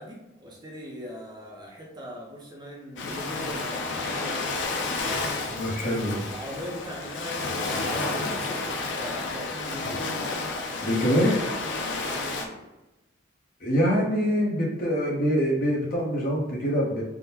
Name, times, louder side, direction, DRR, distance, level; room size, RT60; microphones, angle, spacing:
voice 1, 0.0-5.0 6.3-10.1 11.9-12.7, equal, 20° right, -2 dB, 0.6 m, -40 dB
Ocean, 3.0-12.5, left 3 dB, 60° left, 0.4 m, -31 dB
voice 2, 5.5-6.2 10.8-11.5 13.6-17.0, equal, 45° left, -4 dB, 0.8 m, -24 dB
3.5 x 2.1 x 2.8 m, 1.0 s
head